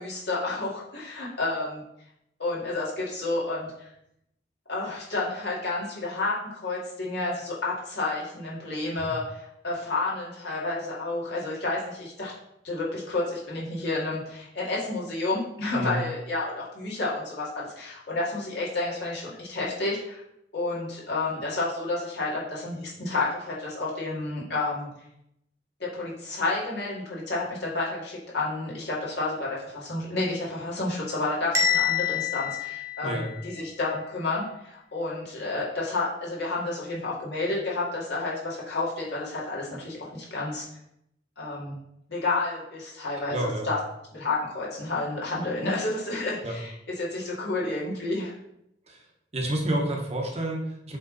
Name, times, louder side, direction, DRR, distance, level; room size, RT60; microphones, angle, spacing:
voice 1, 0.0-1.8 2.4-3.9 4.7-12.3 12.6-20.2 20.5-24.9 25.8-40.7 41.4-41.8 42.1-43.8 44.1-48.3, left 2 dB, 65° left, -6 dB, 2.3 m, -30 dB
Bell, 31.6-33.6, left 7 dB, 15° right, 1.1 m, -27 dB
voice 2, 43.3-43.7 46.4-46.5 48.9-49.0 49.3-51.0, right 1 dB, 35° right, 0 dB, 1.1 m, -29 dB
7.8 x 3.4 x 4.0 m, 0.78 s
head